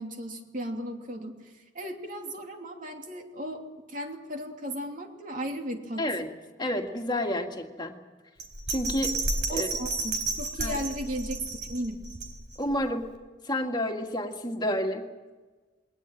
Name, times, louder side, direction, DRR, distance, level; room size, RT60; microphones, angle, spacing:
voice 1, 0.0-1.4 1.7-3.6 3.9-6.0 9.5-11.4 11.7-12.0, equal, 50° right, 3 dB, 2.9 m, -35 dB
voice 2, 6.0-6.3 6.6-8.0 8.7-9.1 9.5-9.7 10.6-10.8 12.6-13.0 13.4-15.0, left 1 dB, 25° left, 3 dB, 1.9 m, -29 dB
Bell, 8.4-12.7 13.1-13.2, right 3 dB, 85° right, 4.2 m, -32 dB
21.0 x 19.0 x 9.1 m, 1.3 s
head